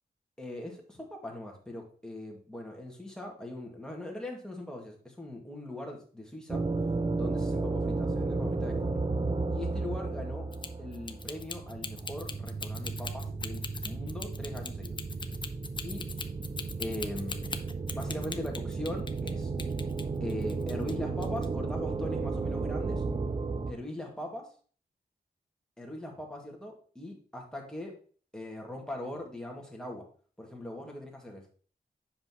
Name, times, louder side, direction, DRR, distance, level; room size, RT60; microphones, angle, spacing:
voice 1, 0.4-6.6 7.1-9.0 9.5-10.5 10.8-15.0 15.8-16.0 16.8-17.4 17.9-19.5 20.2-23.0 23.7-24.4 25.8-27.9 28.3-30.0 30.4-31.4, left 1 dB, 5° left, 0 dB, 1.9 m, -40 dB
sound 1, 6.5-23.7, right 3 dB, 30° right, 0.5 m, -33 dB
sound 2, 10.5-19.3 19.6-20.9 21.2-21.4, left 4 dB, 30° left, 0.6 m, -40 dB
7.7 x 5.7 x 2.9 m, 0.43 s
wide cardioid pair, 95°, 16 cm